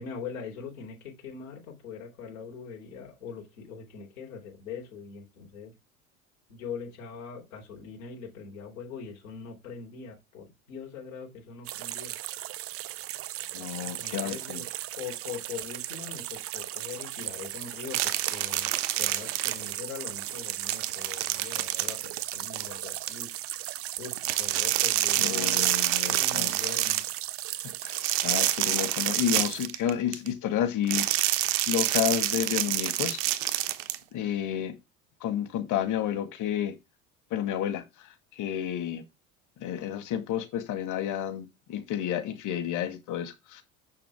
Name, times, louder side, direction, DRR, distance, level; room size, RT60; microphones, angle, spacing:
voice 1, 0.0-5.7 6.5-12.2 13.8-14.7 15.0-18.7 19.0-23.3 24.0-25.7 26.1-27.1, left 6 dB, 75° left, 3.7 m, -42 dB
sound 1, 11.6-29.7, right 14 dB, 35° right, 0.6 m, -37 dB
voice 2, 13.5-14.6 25.2-26.5 27.6-31.1 31.7-33.2 34.1-34.8 35.2-36.8 37.3-37.8 38.4-39.0 39.6-43.6, left 10 dB, 45° left, 2.1 m, -30 dB
sound 2, 17.9-19.9 20.2-23.1 24.2-27.1 27.9-30.3 30.9-34.0, right 15 dB, 60° right, 1.1 m, -27 dB
7.2 x 6.9 x 3.6 m
figure-of-eight pair, 70°, 42 cm